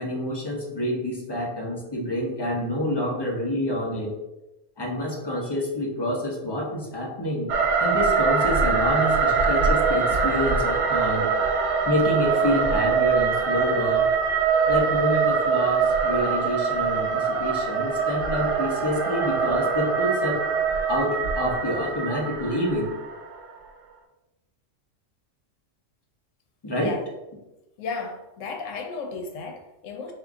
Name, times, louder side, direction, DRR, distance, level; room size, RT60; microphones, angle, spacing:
voice 1, 0.0-4.1 4.8-7.5 7.8-11.3 11.9-14.1 14.7-20.4 20.9-22.9 26.6-26.9, left 1 dB, 30° left, -1 dB, 0.5 m, -27 dB
sound 1, 7.5-23.5, right 5 dB, 90° right, 1.0 m, -23 dB
voice 2, 27.8-30.1, left 4 dB, 90° left, 3 dB, 1.0 m, -34 dB
3.7 x 2.4 x 3.5 m, 0.98 s
omnidirectional pair, 1.3 m